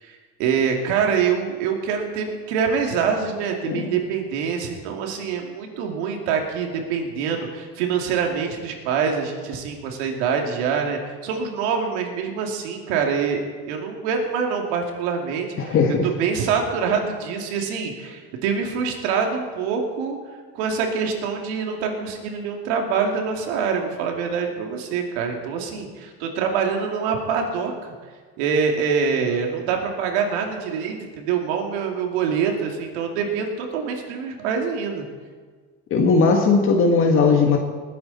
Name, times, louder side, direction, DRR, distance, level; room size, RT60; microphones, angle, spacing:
voice 1, 0.0-13.4 13.7-15.8 16.0-20.2 20.5-27.7 28.4-35.0, right 6 dB, 85° right, 2 dB, 2.7 m, -25 dB
voice 2, 15.6-16.1 35.9-37.6, left 4 dB, 40° left, 3 dB, 1.5 m, -18 dB
20.0 x 10.0 x 4.2 m, 1.5 s
supercardioid pair, 120°, 33 cm